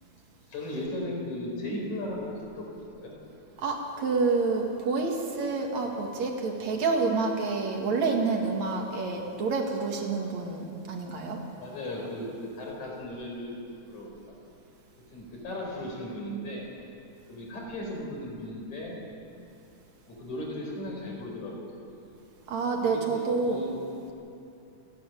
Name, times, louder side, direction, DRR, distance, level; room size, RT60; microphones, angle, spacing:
voice 1, 0.5-2.7 3.0-3.1 11.6-13.5 13.9-14.1 15.1-16.7 17.3-19.0 20.1-21.7 22.9-23.8, left 1 dB, 70° left, -1 dB, 5.9 m, -36 dB
voice 2, 3.6-11.4 22.5-23.6, right 4 dB, 65° right, 1 dB, 3.3 m, -28 dB
29.5 x 11.0 x 9.2 m, 2.8 s
omnidirectional pair, 3.5 m